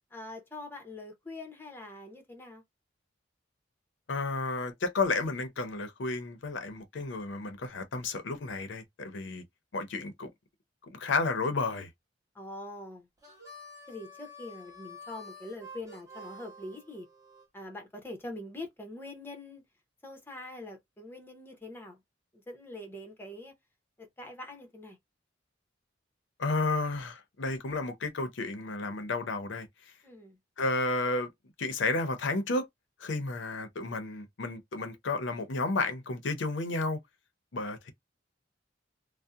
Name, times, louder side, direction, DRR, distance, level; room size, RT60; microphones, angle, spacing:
voice 1, 0.1-2.6 12.3-13.1 13.9-17.1 17.5-19.6 20.0-22.0 22.3-23.5 24.0-25.0 30.0-30.4, left 1 dB, 10° left, 0.7 m, -44 dB
voice 2, 4.1-9.4 9.7-10.3 10.9-11.9 26.4-29.7 30.6-31.3 31.6-32.7 33.0-37.0 37.5-37.9, left 3 dB, 75° left, 0.6 m, -32 dB
Harmonica, 13.2-17.5, left 1 dB, 20° right, 1.1 m, -49 dB
2.7 x 2.0 x 2.3 m
head